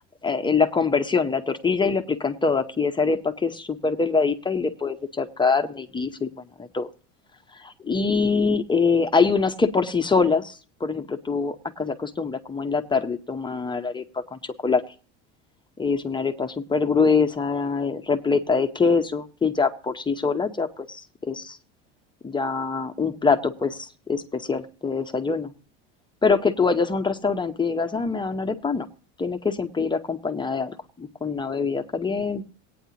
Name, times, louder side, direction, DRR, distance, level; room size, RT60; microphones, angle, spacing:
voice 1, 0.2-6.3 6.6-6.9 7.6-14.8 15.8-21.6 22.2-25.5 26.2-28.9 29.2-32.4, left 4 dB, 15° left, 7 dB, 0.8 m, -24 dB
17.0 x 9.3 x 2.9 m, 0.38 s
supercardioid pair, 120°, 33 cm